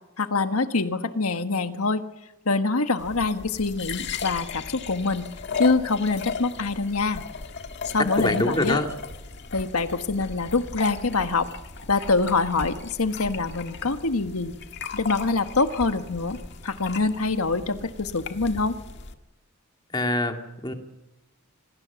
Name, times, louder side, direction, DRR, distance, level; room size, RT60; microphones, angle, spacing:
voice 1, 0.2-2.0 2.4-5.3 5.6-7.2 7.8-8.8 9.5-11.5 11.9-14.5 14.9-16.4 16.6-18.8, left 3 dB, 85° left, 8 dB, 1.5 m, -25 dB
sound 1, 3.0-19.1, left 5 dB, 55° left, 1.7 m, -36 dB
voice 2, 8.2-8.9 19.9-20.7, left 1 dB, 20° left, 4 dB, 2.2 m, -25 dB
26.5 x 19.5 x 7.1 m, 0.97 s
head